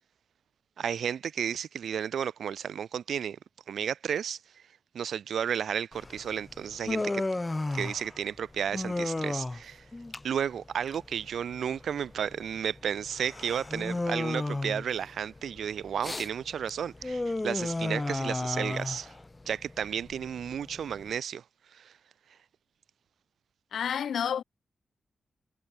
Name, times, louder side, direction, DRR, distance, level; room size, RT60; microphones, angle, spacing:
voice 1, 0.8-3.4 3.7-4.4 4.9-7.2 7.7-9.9 10.2-19.1 19.5-21.4 21.7-21.9, right 8 dB, 80° right, 2.6 m, -33 dB
Human voice, 5.9-21.1, left 2 dB, 15° left, 5.2 m, -34 dB
voice 2, 23.7-24.4, left 8 dB, 85° left, 2.7 m, -29 dB
wide cardioid pair, 180°, 0 cm